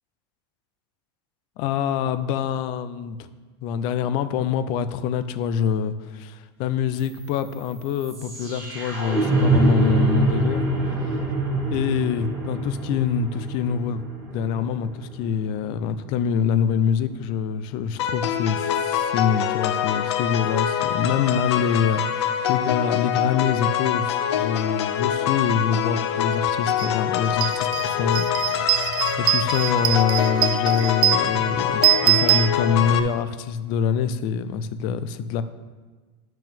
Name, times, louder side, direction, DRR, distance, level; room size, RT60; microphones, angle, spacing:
voice 1, 1.6-3.3 3.6-10.6 11.0-11.2 11.7-14.0 14.3-22.0 22.5-35.4, left 7 dB, 35° left, 12 dB, 0.4 m, -25 dB
sound 1, 7.0-17.0, right 2 dB, 20° right, 1.7 m, -26 dB
sound 2, 18.0-33.0, left 10 dB, 90° left, 0.6 m, -25 dB
sound 3, 26.8-26.9 27.3-33.1, right 16 dB, 60° right, 0.4 m, -23 dB
12.0 x 6.0 x 3.5 m, 1.3 s
supercardioid pair, 180°, 14 cm